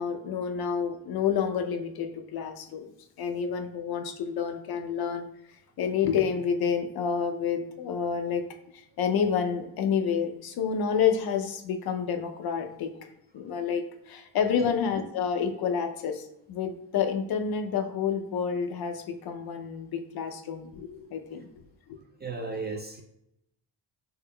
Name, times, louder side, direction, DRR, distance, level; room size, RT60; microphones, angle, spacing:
voice 1, 0.0-2.9 3.2-5.3 5.8-8.4 9.0-12.9 13.3-21.5 21.9-22.0, left 7 dB, 55° left, 6 dB, 0.6 m, -29 dB
voice 2, 22.2-23.0, right 3 dB, 25° right, 3 dB, 0.3 m, -35 dB
3.6 x 3.4 x 2.2 m, 0.81 s
cardioid pair, 85°, 45 cm